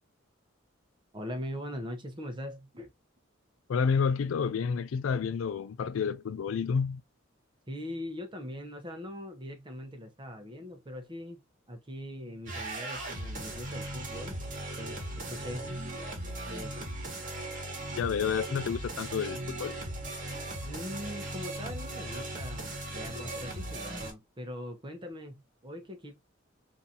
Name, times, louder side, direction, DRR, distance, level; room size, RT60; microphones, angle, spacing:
voice 1, 1.1-2.9 7.7-11.4 11.7-14.4 14.8-15.7 16.5-16.9 20.6-26.2, left 1 dB, 25° right, 0.8 m, -41 dB
voice 2, 3.7-7.0 18.0-19.7, left 6 dB, 75° left, 0.4 m, -29 dB
sound 1, 12.5-24.1, right 1 dB, 40° right, 1.3 m, -38 dB
3.9 x 2.6 x 2.8 m
head